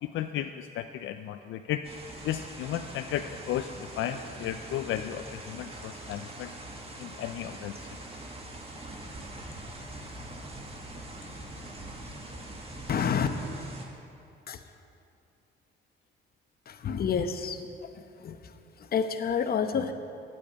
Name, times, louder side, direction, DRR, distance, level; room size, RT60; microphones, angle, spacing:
voice 1, 0.0-1.9 2.2-6.5 7.0-7.9, left 11 dB, 75° left, 8 dB, 0.4 m, -34 dB
sound 1, 1.8-13.9, right 1 dB, 30° right, 1.8 m, -43 dB
voice 2, 12.9-13.3 14.5-14.6 16.7-17.6 18.2-18.5 18.8-19.9, left 7 dB, 50° left, 8 dB, 0.9 m, -28 dB
8.7 x 8.6 x 9.5 m, 2.5 s
cardioid pair, 90°, 20 cm